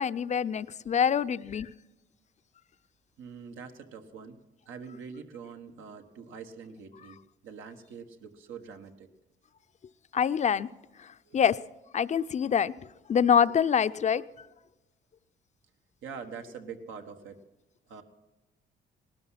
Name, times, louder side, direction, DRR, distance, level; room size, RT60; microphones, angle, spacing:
voice 1, 0.0-1.7 10.1-10.7 11.3-11.6 11.9-12.7 13.1-14.2, left 7 dB, 35° left, 14 dB, 0.5 m, -25 dB
voice 2, 3.2-9.1 11.2-11.4 16.0-17.4 17.9-18.0, right 6 dB, 85° right, 5 dB, 1.5 m, -44 dB
18.5 x 12.5 x 5.8 m, 1.0 s
cardioid pair, 90°, 20 cm